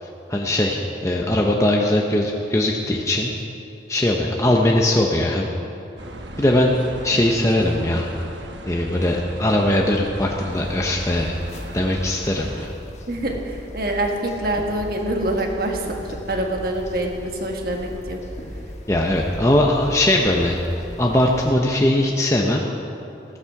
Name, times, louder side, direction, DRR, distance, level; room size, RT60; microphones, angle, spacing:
voice 1, 0.0-3.3 3.9-5.5 6.4-6.8 7.0-8.1 8.7-11.4 11.7-12.7 18.9-20.6 21.0-22.6, left 1 dB, 15° left, -1 dB, 0.7 m, -20 dB
sound 1, 6.0-12.7, right 1 dB, 80° right, 1.1 m, -37 dB
sound 2, 10.5-21.5, equal, 40° left, 1.0 m, -37 dB
voice 2, 13.1-18.2, right 1 dB, 55° right, 2 dB, 1.6 m, -25 dB
15.0 x 13.0 x 4.8 m, 2.9 s
head